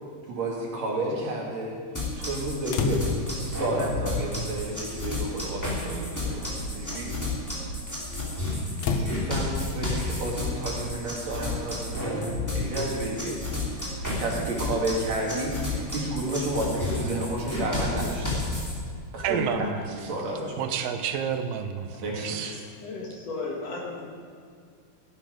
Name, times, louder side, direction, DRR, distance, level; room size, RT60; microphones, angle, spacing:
voice 1, 0.3-1.8 2.2-3.0 3.4-7.2 8.9-13.4 13.7-18.4 19.1-20.7 22.0-22.6, right 1 dB, 55° right, -2 dB, 3.2 m, -31 dB
sound 1, 1.9-18.7, left 2 dB, 5° left, 2.5 m, -31 dB
sound 2, 2.7-3.4 4.6-4.7 5.7-5.9 6.4-7.0 8.8-9.2, left 4 dB, 75° left, 1.6 m, -29 dB
voice 2, 19.2-19.8 20.6-22.5, right 7 dB, 85° right, 7 dB, 2.5 m, -29 dB
voice 3, 22.8-24.1, left 3 dB, 55° left, -1 dB, 2.3 m, -34 dB
14.0 x 10.5 x 4.9 m, 2.2 s
omnidirectional pair, 3.9 m